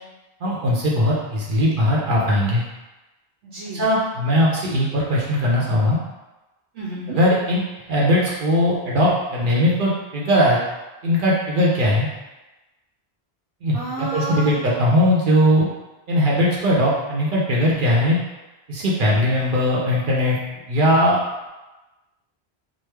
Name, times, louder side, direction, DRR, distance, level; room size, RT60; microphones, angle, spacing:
voice 1, 0.4-2.6 3.7-6.0 7.1-7.6 7.9-10.6 11.0-12.1 13.6-15.7 16.1-18.2 18.7-20.4 20.7-21.2, equal, 55° right, -4 dB, 0.7 m, -19 dB
voice 2, 3.4-3.8 6.7-7.2 13.7-14.6, right 2 dB, 90° right, -8 dB, 0.9 m, -30 dB
3.1 x 2.0 x 3.3 m, 1.1 s
omnidirectional pair, 1.1 m